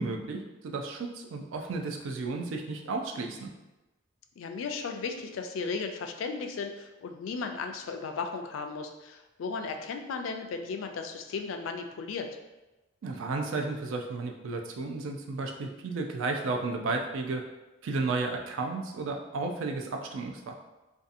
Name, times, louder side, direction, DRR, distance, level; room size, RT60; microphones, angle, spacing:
voice 1, 0.0-3.5 13.0-17.4 17.8-20.5, right 3 dB, 80° right, 3 dB, 0.4 m, -33 dB
voice 2, 4.4-12.3, left 4 dB, 80° left, 5 dB, 0.3 m, -35 dB
2.6 x 2.3 x 2.5 m, 1.1 s
head